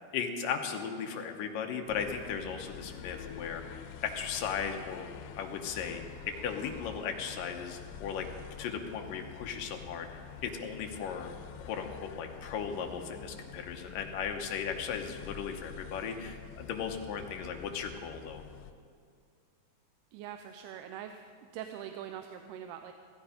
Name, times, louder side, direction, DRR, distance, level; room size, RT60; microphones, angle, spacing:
voice 1, 0.1-5.1 5.3-11.3 11.6-18.4, left 7 dB, 70° left, 3 dB, 2.3 m, -37 dB
sound 1, 1.9-18.7, left 8 dB, 90° left, 2.8 m, -47 dB
voice 2, 20.1-21.2 21.5-22.9, right 10 dB, 80° right, 6 dB, 2.6 m, -43 dB
16.0 x 15.0 x 5.1 m, 2.2 s
omnidirectional pair, 4.8 m